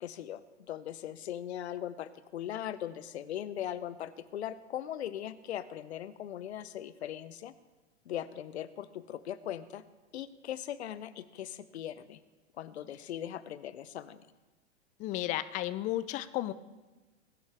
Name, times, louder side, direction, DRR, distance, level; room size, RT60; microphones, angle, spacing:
voice 1, 0.0-7.5 8.1-9.8 10.1-12.2 12.6-14.2, left 11 dB, 60° left, 15 dB, 0.9 m, -39 dB
voice 2, 15.0-16.5, left 14 dB, 20° left, 15 dB, 0.4 m, -33 dB
20.5 x 10.5 x 3.5 m, 1.2 s
figure-of-eight pair, 100°, 36 cm